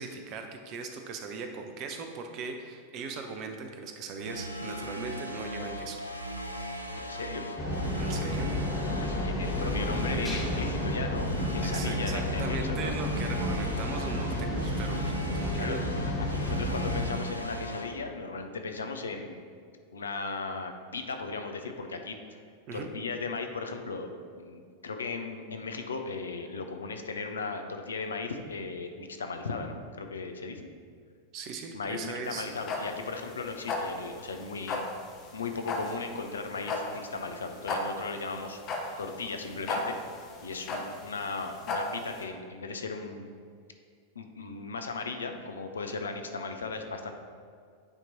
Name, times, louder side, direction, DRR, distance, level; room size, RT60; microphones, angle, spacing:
voice 1, 0.0-6.0 8.0-8.6 11.6-15.8 16.2-16.3 22.7-22.9 31.3-32.5, right 4 dB, 40° right, 5 dB, 0.6 m, -39 dB
sound 1, 4.2-17.9, equal, 90° right, 0.4 m, -38 dB
voice 2, 6.9-7.4 8.8-13.0 15.5-15.9 16.3-19.4 19.9-22.2 22.7-24.1 24.3-30.6 31.7-34.8 35.3-38.6 39.0-40.0 40.4-43.3 44.2-47.1, left 4 dB, 70° left, 6 dB, 0.5 m, -37 dB
sound 2, 7.6-17.1, left 1 dB, 15° left, 1.2 m, -31 dB
sound 3, 32.2-42.2, left 3 dB, 35° left, 0.8 m, -35 dB
8.9 x 3.0 x 4.0 m, 2.2 s
figure-of-eight pair, 90°, 0 cm